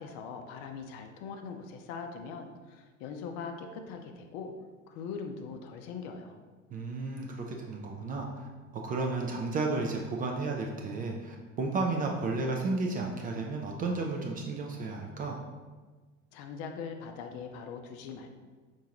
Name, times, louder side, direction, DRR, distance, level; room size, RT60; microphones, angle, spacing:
voice 1, 0.0-4.5 4.9-6.4 16.3-18.3, left 5 dB, 45° left, 5 dB, 0.5 m, -41 dB
voice 2, 6.7-8.5 8.7-15.4, right 3 dB, 25° right, 1 dB, 0.4 m, -33 dB
5.5 x 2.6 x 2.8 m, 1.4 s
figure-of-eight pair, 70°, 39 cm